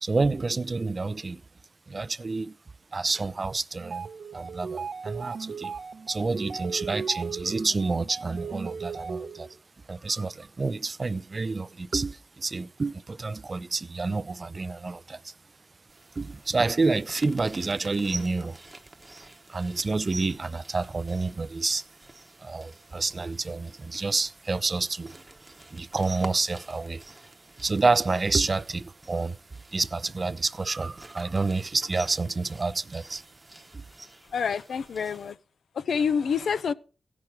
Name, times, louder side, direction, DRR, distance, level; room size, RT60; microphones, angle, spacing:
voice 1, 0.0-1.4 1.9-2.6 2.9-4.1 4.3-5.8 6.1-9.5 9.9-15.3 16.2-18.6 19.5-21.8 22.4-25.2 25.7-27.0 27.6-29.4 29.7-33.2 33.7-33.8, right 3 dB, 40° right, 0.4 m, -28 dB
sound 1, 3.8-9.6, right 5 dB, 90° right, 1.2 m, -37 dB
sound 2, 15.9-35.3, right 2 dB, 20° right, 1.0 m, -48 dB
voice 2, 34.3-35.3 35.9-36.7, left 6 dB, 80° left, 0.5 m, -27 dB
16.0 x 6.0 x 4.7 m
cardioid pair, 65°, 0 cm